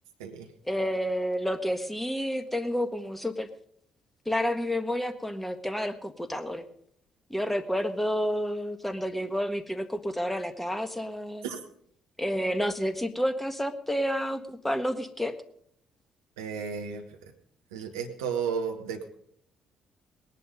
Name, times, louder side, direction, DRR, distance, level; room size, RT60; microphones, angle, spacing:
voice 1, 0.6-3.5 4.2-6.6 7.3-11.4 12.2-15.3, equal, 5° left, 10 dB, 1.5 m, -30 dB
voice 2, 16.4-17.3 17.7-19.0, right 6 dB, 70° right, 4 dB, 1.2 m, -33 dB
19.0 x 11.0 x 5.2 m, 0.68 s
figure-of-eight pair, 45°, 2 cm